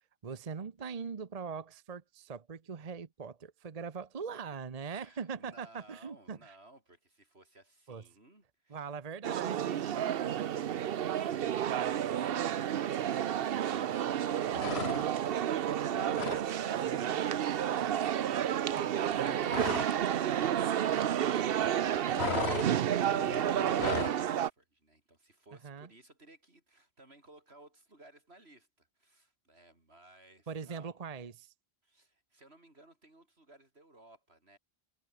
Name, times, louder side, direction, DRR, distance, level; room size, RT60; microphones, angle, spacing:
voice 1, 0.2-6.6 7.9-8.0 8.7-10.0 10.4-10.5 16.9-17.2 25.6-25.9 30.5-31.5, right 6 dB, 40° right, 0.9 m, -41 dB
voice 2, 4.8-8.9 21.3-31.0 31.8-34.6, right 2 dB, 80° right, 5.7 m, -59 dB
sound 1, 9.2-24.5, right 10 dB, 65° right, 0.9 m, -31 dB
sound 2, 14.5-15.4 15.7-16.5 16.8-17.0 17.3-20.1 20.3-21.4 21.7-24.2, left 6 dB, 90° left, 1.5 m, -38 dB
omnidirectional pair, 1.1 m